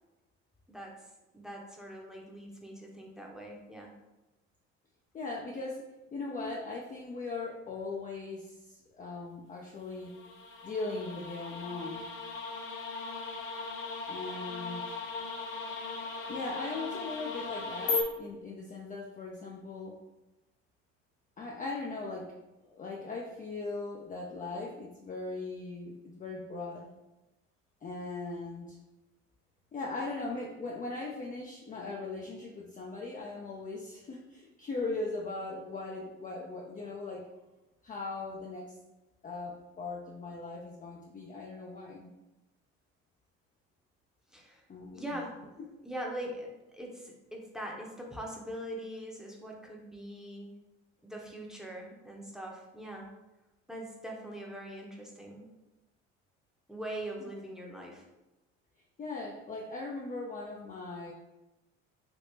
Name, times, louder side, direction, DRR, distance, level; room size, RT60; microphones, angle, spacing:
voice 1, 0.7-1.1 1.3-3.9 44.3-44.6 44.9-45.3 45.8-50.5 51.0-53.1 53.7-55.4 56.7-58.0, right 1 dB, ahead, -1 dB, 0.8 m, -42 dB
voice 2, 5.1-5.8 6.1-10.2 10.6-12.1 14.1-14.8 16.3-20.0 21.4-22.3 22.6-26.9 27.8-28.8 29.7-37.3 37.8-38.7 39.2-42.1 44.7-45.2 57.2-57.3 59.0-61.1, left 3 dB, 25° left, -2 dB, 0.5 m, -39 dB
sound 1, 9.9-18.0, left 4 dB, 60° left, 0.7 m, -37 dB
3.5 x 2.8 x 2.7 m, 1.0 s
hypercardioid pair, 65°, 35 cm